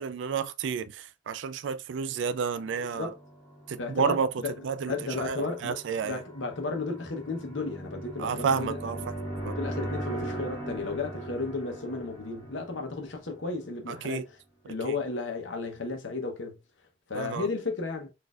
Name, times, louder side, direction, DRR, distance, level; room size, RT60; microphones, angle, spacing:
voice 1, 0.0-3.1 3.7-4.3 4.6-6.2 8.2-9.0 9.5-9.6 13.9-14.2 14.8-14.9 17.1-17.5, right 6 dB, 80° right, 0.3 m, -30 dB
voice 2, 2.8-3.2 3.8-4.5 4.9-9.1 9.4-14.4 14.6-16.6 17.1-18.1, left 3 dB, 85° left, 0.8 m, -34 dB
sound 1, 3.1-13.7, right 1 dB, 10° left, 1.5 m, -39 dB
4.1 x 2.6 x 2.3 m
head